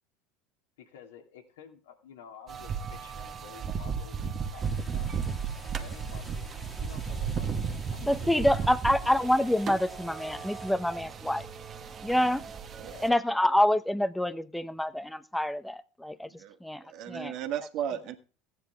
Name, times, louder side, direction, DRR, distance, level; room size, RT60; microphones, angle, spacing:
voice 1, 0.8-5.1 5.6-7.5 7.9-9.1 12.8-13.2, left 7 dB, 85° left, 2.5 m, -51 dB
sound 1, 2.5-13.1, right 6 dB, 35° right, 1.4 m, -35 dB
sound 2, 4.6-10.7, left 3 dB, 20° left, 1.9 m, -51 dB
voice 2, 8.0-11.4 12.0-12.4 13.0-16.3 16.6-17.3, left 1 dB, 5° left, 0.9 m, -27 dB
voice 3, 16.3-18.2, right 9 dB, 60° right, 1.6 m, -35 dB
15.0 x 9.4 x 3.5 m
hypercardioid pair, 95°, 0 cm